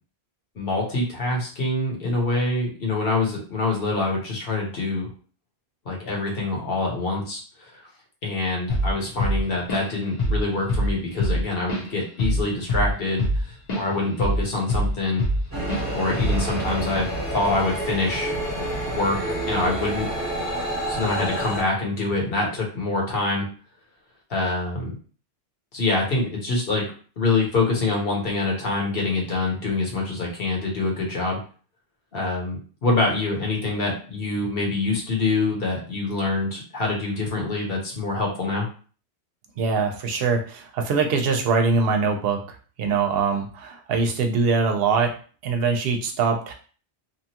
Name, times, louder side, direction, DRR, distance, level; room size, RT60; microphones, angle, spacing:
voice 1, 0.5-5.1 5.8-7.8 8.2-13.3 13.7-15.2 15.9-18.4 18.9-19.2 19.5-20.1 20.9-23.5 24.3-25.0 25.7-26.9 27.2-31.4 32.1-38.7, left 3 dB, 60° left, -2 dB, 1.1 m, -25 dB
Drum kit / Drum, 8.7-8.9 9.2-9.9 10.2-10.4 10.7-13.9 14.2-15.4 15.7-15.9 16.2-16.5, equal, 45° left, 0.8 m, -23 dB
sound 1, 15.5-21.6, right 1 dB, 15° right, 1.0 m, -28 dB
voice 2, 39.6-45.1 45.4-46.5, right 4 dB, 65° right, 4 dB, 0.8 m, -23 dB
2.9 x 2.3 x 2.8 m, 0.40 s
omnidirectional pair, 1.1 m